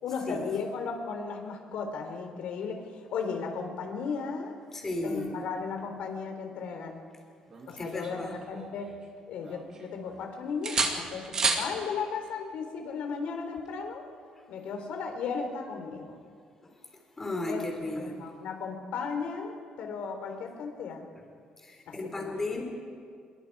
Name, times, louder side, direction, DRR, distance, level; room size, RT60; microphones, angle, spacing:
voice 1, 0.0-4.5 5.0-7.0 7.7-8.9 9.3-14.0 14.5-16.2 17.5-17.6 18.0-21.0 21.9-22.3, left 5 dB, 70° left, 4 dB, 3.6 m, -35 dB
voice 2, 4.7-5.5 7.8-8.4 16.6-16.7 17.2-18.1 21.2-21.3 21.6-22.6, left 2 dB, 15° left, 2 dB, 3.7 m, -35 dB
sound 1, 7.5-9.0 9.4-10.2 10.6-11.7 13.6-13.8, right 4 dB, 30° right, 2.1 m, -32 dB
25.5 x 22.5 x 4.8 m, 2.2 s
cardioid pair, 165°, 2 cm